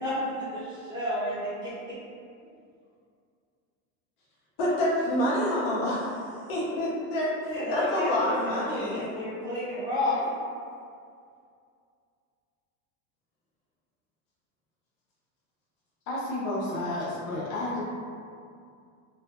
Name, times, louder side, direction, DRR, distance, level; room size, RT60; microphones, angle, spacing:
voice 1, 0.0-1.9 7.5-10.3, left 1 dB, 10° right, -11 dB, 0.7 m, -31 dB
voice 2, 4.6-9.1, left 1 dB, 35° left, -7 dB, 0.5 m, -27 dB
voice 3, 16.1-17.8, left 1 dB, 85° left, -6 dB, 1.0 m, -31 dB
2.6 x 2.4 x 2.4 m, 2.3 s
cardioid pair, 160°, 39 cm